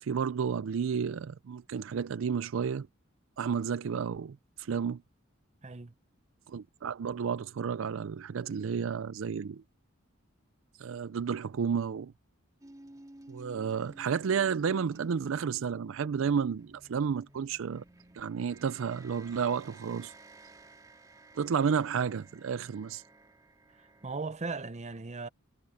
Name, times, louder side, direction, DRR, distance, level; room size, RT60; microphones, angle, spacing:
voice 1, 0.0-2.9 3.4-5.0 6.5-9.6 10.8-12.1 13.3-17.8 18.1-20.1 21.4-23.0, right 6 dB, 70° right, 0.4 m, -31 dB
voice 2, 5.6-5.9 23.8-25.3, right 3 dB, 35° right, 0.8 m, -38 dB
Ya Weirdo, 12.6-24.2, right 2 dB, 20° right, 2.1 m, -54 dB
head